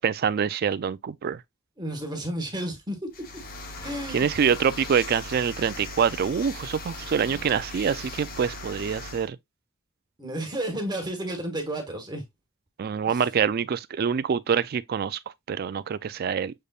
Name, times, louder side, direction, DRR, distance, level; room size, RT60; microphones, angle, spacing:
voice 1, 0.0-1.4 4.1-9.4 12.8-15.2 15.5-16.5, right 7 dB, 45° right, 0.3 m, -25 dB
voice 2, 1.8-3.0 3.8-4.3 7.2-7.4 10.2-12.2 13.1-13.2, right 1 dB, 20° right, 1.3 m, -32 dB
sound 1, 3.1-9.3, left 2 dB, 45° left, 0.9 m, -39 dB
6.6 x 3.3 x 2.4 m
head